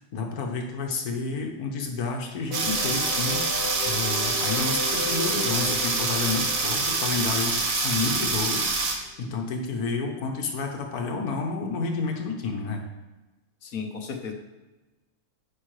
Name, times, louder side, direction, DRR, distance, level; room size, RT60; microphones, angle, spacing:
voice 1, 0.1-12.9, left 4 dB, 85° left, 3 dB, 1.5 m, -30 dB
sound 1, 2.5-8.2, left 4 dB, 55° left, 0.8 m, -36 dB
sound 2, 2.5-8.9, right 3 dB, 65° right, 1.4 m, -26 dB
voice 2, 13.6-14.3, left 5 dB, 70° left, 3 dB, 1.4 m, -34 dB
10.0 x 5.3 x 3.2 m, 1.1 s
omnidirectional pair, 1.6 m